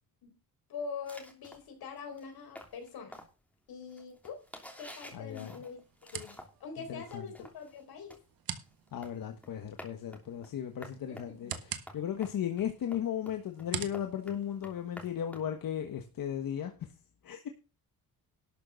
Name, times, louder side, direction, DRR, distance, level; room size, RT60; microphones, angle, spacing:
voice 1, 0.7-3.2 3.7-4.4 4.8-8.2 11.1-11.6, left 5 dB, 90° left, 5 dB, 4.4 m, -44 dB
sound 1, 1.1-6.7 7.0-16.0, equal, 5° left, 3.0 m, -51 dB
sound 2, 4.4-15.3, right 9 dB, 75° right, 1.5 m, -47 dB
voice 2, 5.1-5.5 6.9-7.2 8.9-16.7 17.2-17.5, left 9 dB, 70° left, 6 dB, 1.4 m, -36 dB
12.0 x 6.6 x 6.3 m, 0.32 s
wide cardioid pair, 140°, 36 cm